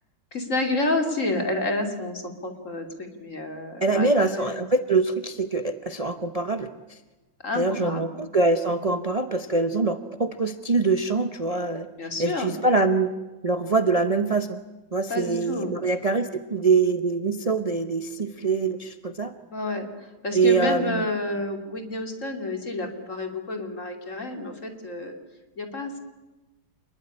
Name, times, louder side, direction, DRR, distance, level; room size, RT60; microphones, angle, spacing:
voice 1, 0.3-4.5 7.4-8.2 8.8-8.9 11.9-12.5 15.1-15.7 19.5-25.1 25.6-26.0, left 2 dB, 35° left, 5 dB, 3.2 m, -29 dB
voice 2, 3.8-7.0 7.6-11.9 12.2-13.1 13.4-14.6 14.9-19.3 20.3-21.1, right 3 dB, 60° right, 8 dB, 0.3 m, -24 dB
28.5 x 20.5 x 9.9 m, 1.1 s
omnidirectional pair, 2.4 m